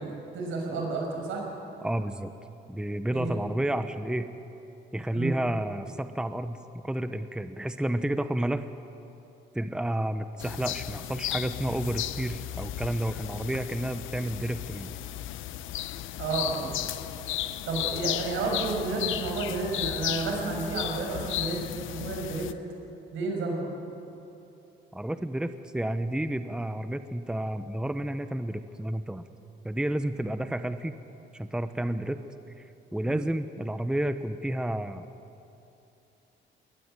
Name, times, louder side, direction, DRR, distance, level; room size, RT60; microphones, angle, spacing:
voice 1, 0.0-1.4 3.1-3.3 5.1-5.3 16.2-16.9 17.6-21.6 21.9-22.5 23.1-23.7 33.1-33.2, right 3 dB, 85° right, 0 dB, 6.4 m, -31 dB
voice 2, 1.8-2.3 2.7-4.3 4.9-8.7 9.5-14.9 24.9-29.2 29.6-30.9 31.3-32.2 32.6-35.1, right 1 dB, 5° right, 10 dB, 0.9 m, -31 dB
sound 1, 10.4-22.5, left 13 dB, 85° left, 0.8 m, -34 dB
21.0 x 19.5 x 9.1 m, 2.8 s
cardioid pair, 90°, 20 cm